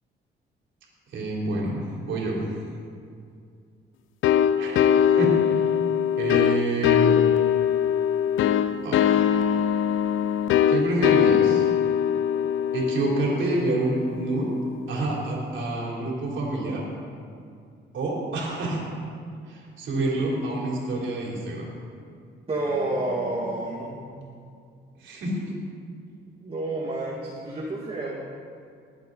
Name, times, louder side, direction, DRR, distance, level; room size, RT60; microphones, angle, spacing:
voice 1, 1.1-2.5 4.6-5.7 6.2-7.1 8.8-9.3 10.7-11.7 12.7-14.5 14.9-16.8 17.9-18.8 19.5-21.7 25.0-25.5, right 2 dB, 70° right, -3 dB, 3.7 m, -28 dB
sound 1, 4.2-14.7, left 9 dB, 80° left, 0.5 m, -22 dB
voice 2, 22.5-24.1 26.4-28.2, right 2 dB, 30° right, -4 dB, 2.1 m, -29 dB
21.0 x 8.4 x 4.1 m, 2.3 s
cardioid pair, 90°, 20 cm